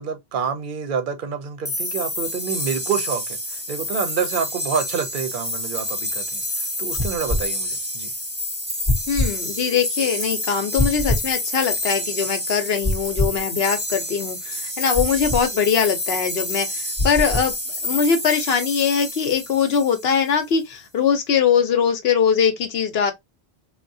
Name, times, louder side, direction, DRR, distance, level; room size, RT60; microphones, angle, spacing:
voice 1, 0.0-8.1, right 6 dB, 60° right, 0.8 m, -28 dB
sound 1, 1.6-20.3, left 1 dB, 10° right, 1.0 m, -29 dB
sound 2, 7.0-7.4 8.9-9.3 10.8-11.3 12.8-13.4 14.9-15.4 17.0-17.5, left 1 dB, 25° left, 0.7 m, -23 dB
voice 2, 9.1-17.5 17.8-23.1, left 7 dB, 75° left, 1.0 m, -21 dB
3.6 x 2.4 x 2.5 m
omnidirectional pair, 1.0 m